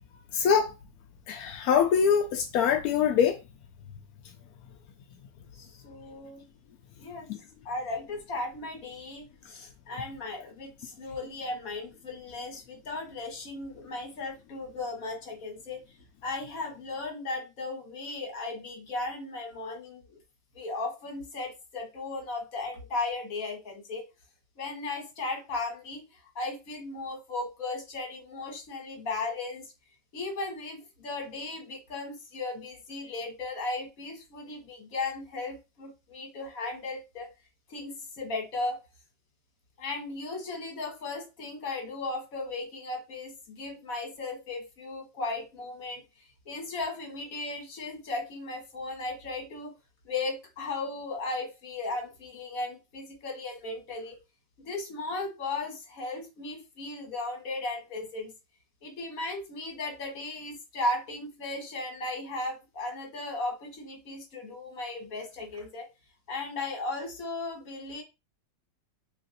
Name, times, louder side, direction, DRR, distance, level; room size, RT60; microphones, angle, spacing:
voice 1, 0.3-0.7 1.3-3.4 7.3-7.4, left 7 dB, 70° left, 0.9 m, -24 dB
voice 2, 5.6-6.4 7.0-7.3 7.6-15.8 16.2-20.2 20.5-24.0 24.6-29.7 30.1-37.3 37.7-38.8 39.8-46.0 46.4-49.7 50.0-54.2 54.6-58.3 58.8-65.9 66.3-68.0, left 2 dB, 55° left, 1.5 m, -36 dB
3.1 x 2.6 x 4.0 m
omnidirectional pair, 1.9 m